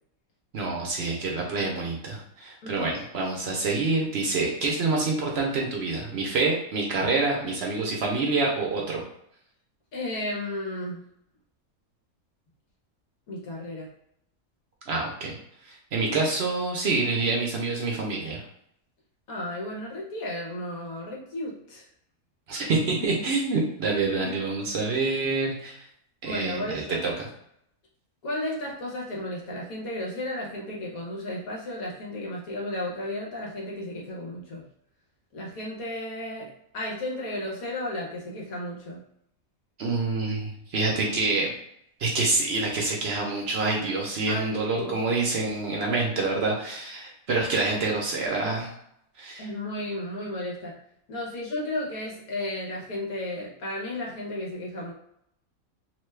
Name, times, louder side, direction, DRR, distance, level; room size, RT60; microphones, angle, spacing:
voice 1, 0.5-9.0 14.9-15.4 15.6-18.4 22.5-25.8 26.2-27.3 39.8-41.5 42.0-48.7 49.2-49.4, right 3 dB, 60° right, -1 dB, 0.8 m, -27 dB
voice 2, 2.6-2.9 9.9-11.0 13.3-13.9 19.3-21.8 23.1-23.2 24.2-24.3 26.2-27.0 28.2-34.6 35.3-39.0 44.3-44.9 49.4-50.7 51.1-54.9, left 1 dB, 85° left, -3 dB, 1.4 m, -34 dB
3.0 x 2.2 x 3.2 m, 0.74 s
omnidirectional pair, 1.5 m